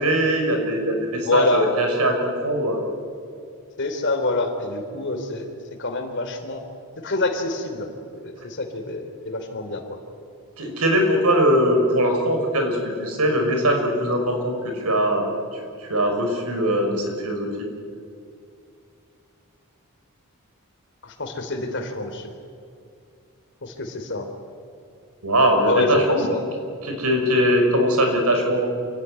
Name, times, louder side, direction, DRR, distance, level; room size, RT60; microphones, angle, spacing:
voice 1, 0.0-2.8 10.6-15.2 15.5-17.5 25.2-26.3 26.8-28.7, equal, 85° right, 3 dB, 5.5 m, -21 dB
voice 2, 1.2-1.7 3.8-5.5 5.8-6.6 7.0-7.9 8.2-9.8 21.0-22.3 23.6-24.3 25.6-26.4, left 2 dB, 55° left, 6 dB, 3.3 m, -26 dB
27.0 x 17.0 x 9.8 m, 2.4 s
head